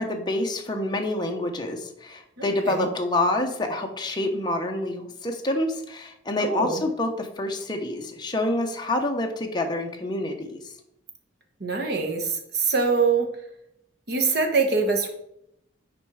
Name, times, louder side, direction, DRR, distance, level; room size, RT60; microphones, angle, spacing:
voice 1, 0.0-10.6, left 1 dB, 20° left, 2 dB, 0.9 m, -27 dB
voice 2, 2.4-2.9 6.4-6.8 11.6-13.3 14.1-15.1, right 4 dB, 55° right, 3 dB, 1.2 m, -24 dB
7.4 x 4.7 x 4.8 m, 0.78 s
head